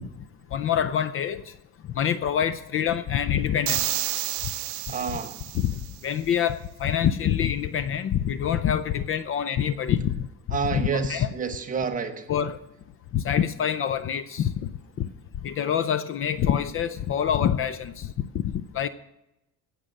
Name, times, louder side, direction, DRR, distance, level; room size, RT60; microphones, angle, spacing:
voice 1, 0.5-1.5 2.0-4.0 5.5-11.3 12.3-12.6 13.1-14.5 15.0-15.1 15.4-18.4 18.7-18.9, left 9 dB, 40° left, 14 dB, 0.5 m, -26 dB
sound 1, 3.7-5.9, right 17 dB, 60° right, 0.5 m, -30 dB
voice 2, 4.9-5.4 10.5-12.3, right 5 dB, 25° right, 5 dB, 1.1 m, -29 dB
17.5 x 6.8 x 6.4 m, 0.90 s
cardioid pair, 150°, 33 cm